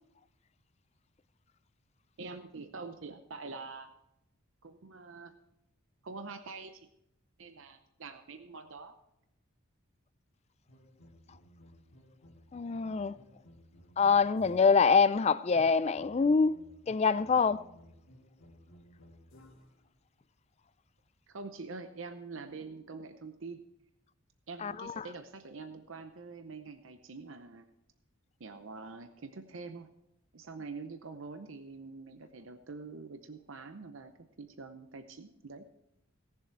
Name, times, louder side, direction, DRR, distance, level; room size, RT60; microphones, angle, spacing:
voice 1, 2.2-3.9 4.6-5.3 6.0-6.9 7.4-8.9 21.3-23.6 24.5-27.7 28.4-29.9 30.3-34.1 34.4-35.6, right 4 dB, 65° right, 0.7 m, -45 dB
sound 1, 10.7-14.9 15.6-19.9, equal, 75° left, 2.2 m, -58 dB
voice 2, 12.5-13.1 14.0-16.5 16.9-17.6 24.6-24.9, left 5 dB, 30° left, 0.3 m, -25 dB
17.5 x 7.1 x 4.5 m
head